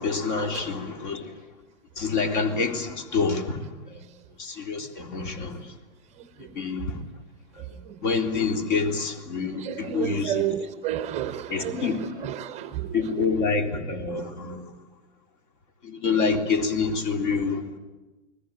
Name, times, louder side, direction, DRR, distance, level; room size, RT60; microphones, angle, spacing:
voice 1, 0.0-1.3 2.0-3.6 3.9-4.0 4.4-5.6 6.4-7.0 7.6-10.5 11.5-12.0 12.9-14.6 15.8-17.6, left 4 dB, 40° left, 5 dB, 3.6 m, -27 dB
voice 2, 9.6-13.2, right 10 dB, 20° right, 12 dB, 0.9 m, -31 dB
29.5 x 20.5 x 9.3 m, 1.1 s
figure-of-eight pair, 115°, 36 cm